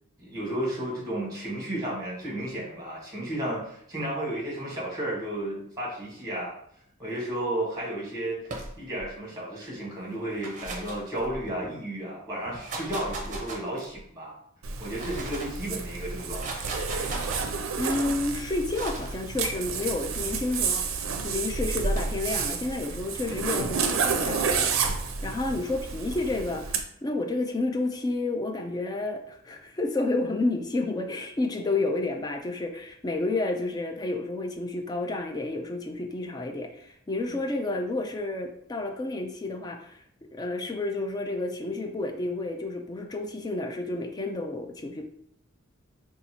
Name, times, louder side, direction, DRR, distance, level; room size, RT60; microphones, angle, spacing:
voice 1, 0.2-6.5 7.0-14.3 14.8-16.6, right 1 dB, 20° right, -4 dB, 1.4 m, -33 dB
sound 1, 8.4-9.1 10.2-11.7 12.4-14.0 14.7-15.6 16.2-17.6 18.7-19.2 20.2-20.6 21.6-22.2, right 2 dB, 40° right, 0.6 m, -38 dB
Zipper (clothing), 14.6-26.8, right 5 dB, 80° right, 0.4 m, -30 dB
voice 2, 17.8-21.0 21.2-40.0 40.3-45.1, left 2 dB, 20° left, 4 dB, 0.3 m, -30 dB
4.0 x 2.4 x 2.8 m, 0.70 s
head